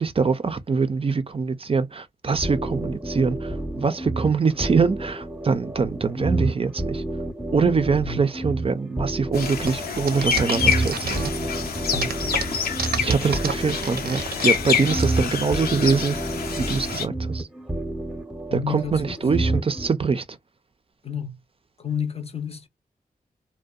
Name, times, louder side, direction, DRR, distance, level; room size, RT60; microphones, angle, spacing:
voice 1, 0.0-7.0 7.5-11.3 13.0-16.2 16.6-17.5 18.5-20.2, right 5 dB, 35° right, 0.4 m, -24 dB
sound 1, 2.4-19.9, right 2 dB, 5° right, 0.7 m, -30 dB
sound 2, 9.3-17.0, left 6 dB, 80° left, 0.6 m, -27 dB
sound 3, 9.6-11.5 11.9-15.0, right 6 dB, 85° right, 0.6 m, -30 dB
voice 2, 11.9-12.2 18.5-19.6 21.0-21.4 21.8-22.7, left 7 dB, 40° left, 0.6 m, -31 dB
2.6 x 2.1 x 2.3 m
cardioid pair, 55°, 16 cm